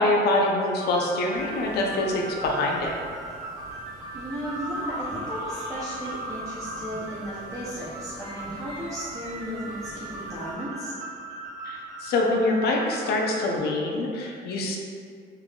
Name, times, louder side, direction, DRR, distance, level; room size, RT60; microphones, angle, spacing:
voice 1, 0.0-2.9 11.7-14.8, left 2 dB, 70° left, 0 dB, 0.6 m, -25 dB
sound 1, 0.6-13.6, right 2 dB, 45° right, 1.2 m, -39 dB
sound 2, 1.3-10.5, right 1 dB, 75° right, 1.3 m, -40 dB
voice 2, 4.1-10.9, equal, 20° right, -10 dB, 0.7 m, -35 dB
3.7 x 3.4 x 2.3 m, 2.2 s
cardioid pair, 110°, 17 cm